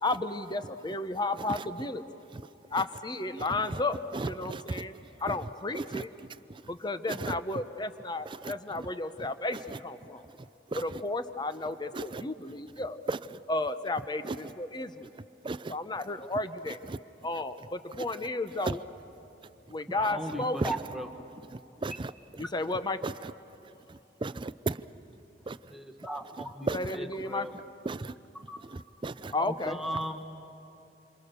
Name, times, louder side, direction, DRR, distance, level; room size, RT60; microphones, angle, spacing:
voice 1, 0.0-2.0 2.7-6.1 6.7-10.2 10.7-13.0 13.5-15.1 15.7-16.8 17.2-18.9 19.7-20.6 22.4-23.2 26.7-27.5 29.3-29.8, left 2 dB, 25° left, 11 dB, 0.9 m, -33 dB
voice 2, 4.1-4.6 5.9-6.0 7.2-7.3 10.7-10.8 11.9-12.2 13.1-13.2 15.4-15.7 18.7-18.8 20.6-20.7 21.8-22.1 24.2-24.8 25.5-25.6 26.7-26.8 27.9-28.1 28.7-29.3, right 3 dB, 30° right, 15 dB, 0.5 m, -33 dB
voice 3, 19.9-21.1 25.7-27.5 28.5-28.6 29.4-30.2, right 1 dB, ahead, 4 dB, 1.4 m, -37 dB
27.5 x 26.5 x 6.9 m, 3.0 s
head